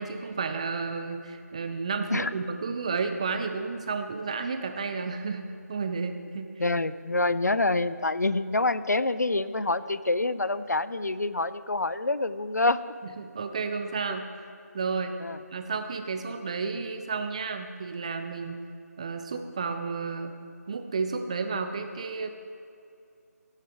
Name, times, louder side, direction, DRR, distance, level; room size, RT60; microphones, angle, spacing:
voice 1, 0.0-6.5 13.2-14.2 14.7-15.1 15.5-18.6 19.0-20.4 20.7-22.3, right 4 dB, 20° right, 7 dB, 0.6 m, -32 dB
voice 2, 6.6-12.8 15.2-15.4, left 2 dB, 75° left, 15 dB, 0.5 m, -26 dB
18.0 x 6.6 x 4.7 m, 2.4 s
figure-of-eight pair, 160°, 9 cm